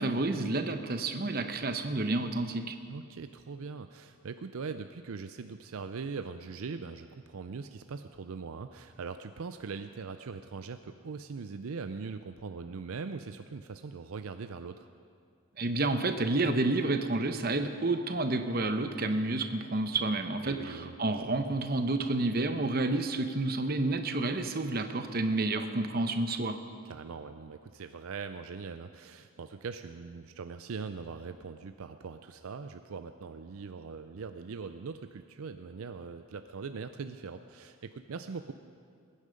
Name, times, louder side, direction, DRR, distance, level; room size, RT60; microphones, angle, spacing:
voice 1, 0.0-2.7 15.6-26.6, right 2 dB, 40° right, 7 dB, 0.9 m, -30 dB
voice 2, 2.9-14.9 20.4-20.9 26.8-38.5, right 5 dB, 70° right, 9 dB, 0.5 m, -41 dB
21.5 x 9.9 x 5.2 m, 2.3 s
head